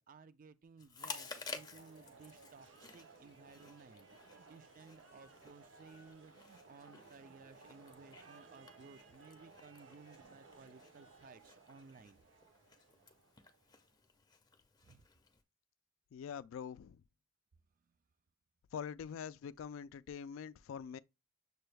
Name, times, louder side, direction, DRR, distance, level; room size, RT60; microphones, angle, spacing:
voice 1, 0.0-12.2 14.8-15.0 17.8-18.0, right 4 dB, 40° right, 0.4 m, -58 dB
Chewing mastication, 0.8-15.4, left 4 dB, 20° left, 0.5 m, -54 dB
sound 1, 1.0-13.9, right 3 dB, 65° right, 0.8 m, -61 dB
sound 2, 2.5-7.3 8.1-12.5, right 4 dB, 80° right, 1.2 m, -68 dB
voice 2, 16.1-17.0 18.7-21.0, left 7 dB, 80° left, 0.3 m, -44 dB
6.6 x 2.3 x 3.2 m
head